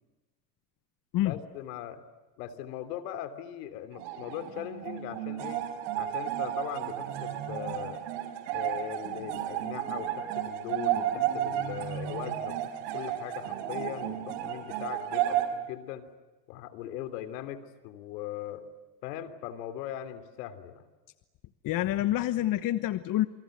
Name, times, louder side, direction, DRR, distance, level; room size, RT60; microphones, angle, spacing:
voice 1, 1.2-2.0 2.4-5.6 6.0-8.0 8.5-16.1 16.5-18.6 19.0-20.8, left 11 dB, 70° left, 11 dB, 3.3 m, -40 dB
sound 1, 3.9-15.5, right 11 dB, 60° right, 5.2 m, -33 dB
voice 2, 21.6-23.3, left 14 dB, 40° left, 12 dB, 1.2 m, -27 dB
28.5 x 24.5 x 8.0 m, 1.2 s
supercardioid pair, 105°, 49 cm